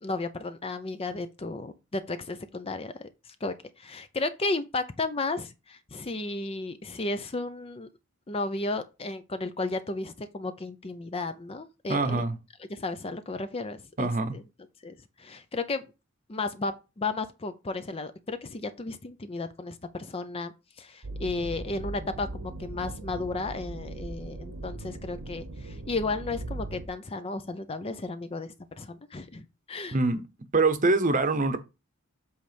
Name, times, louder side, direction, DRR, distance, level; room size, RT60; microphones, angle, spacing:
voice 1, 0.0-7.9 8.3-12.2 12.7-14.4 14.8-15.9 16.3-30.0, left 3 dB, 25° left, 0.5 m, -34 dB
voice 2, 11.9-12.4 14.0-14.4 29.9-30.2 30.5-31.6, right 3 dB, 35° right, 0.9 m, -24 dB
sound 1, 21.0-26.9, right 2 dB, 80° right, 1.0 m, -39 dB
7.8 x 3.3 x 5.1 m
head